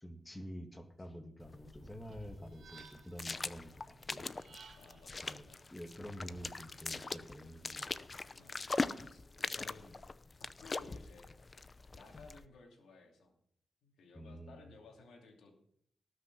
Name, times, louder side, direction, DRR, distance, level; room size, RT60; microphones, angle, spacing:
voice 1, 0.0-4.3 5.2-5.4 5.7-7.9 14.2-14.6, equal, 15° left, 5 dB, 2.1 m, -48 dB
sound 1, 1.4-12.5, left 3 dB, 40° left, 0.7 m, -42 dB
sound 2, 2.1-3.3 4.2-5.1, right 6 dB, 80° right, 2.1 m, -57 dB
voice 2, 4.7-5.7 8.3-10.0 10.4-11.4 11.9-13.3 13.8-15.6, left 3 dB, 85° left, 2 dB, 2.7 m, -58 dB
18.5 x 6.7 x 6.1 m, 0.69 s
cardioid pair, 55°, 0 cm